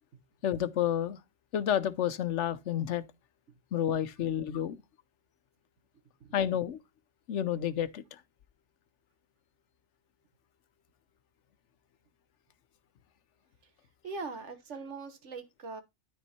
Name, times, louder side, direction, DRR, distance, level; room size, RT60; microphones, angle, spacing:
voice 1, 0.4-1.2 1.5-3.1 3.7-4.8 6.3-6.8 7.3-8.2, left 10 dB, 85° left, 1.1 m, -30 dB
voice 2, 14.0-15.8, right 4 dB, 85° right, 1.6 m, -41 dB
13.0 x 4.4 x 4.3 m
omnidirectional pair, 1.2 m